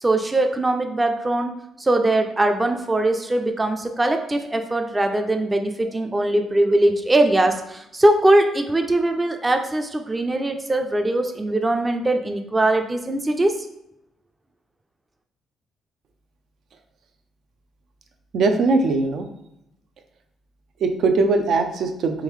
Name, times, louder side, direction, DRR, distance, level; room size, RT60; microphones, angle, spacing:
voice 1, 0.0-13.6, right 1 dB, 20° right, 5 dB, 0.4 m, -21 dB
voice 2, 18.3-19.3 20.8-22.2, right 3 dB, 70° right, 6 dB, 0.5 m, -20 dB
3.6 x 3.5 x 3.1 m, 0.84 s
cardioid pair, 90°, 0 cm